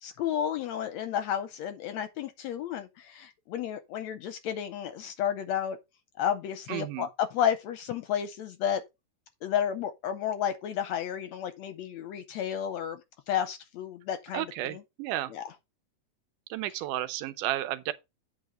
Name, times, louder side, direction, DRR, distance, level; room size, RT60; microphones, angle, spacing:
voice 1, 0.0-5.8 6.2-8.8 9.4-13.0 13.3-14.8 15.3-15.4, left 9 dB, 80° left, 1.7 m, -32 dB
voice 2, 6.7-7.1 14.3-15.3 16.5-17.9, right 14 dB, 80° right, 2.2 m, -32 dB
8.7 x 3.5 x 6.4 m
omnidirectional pair, 3.6 m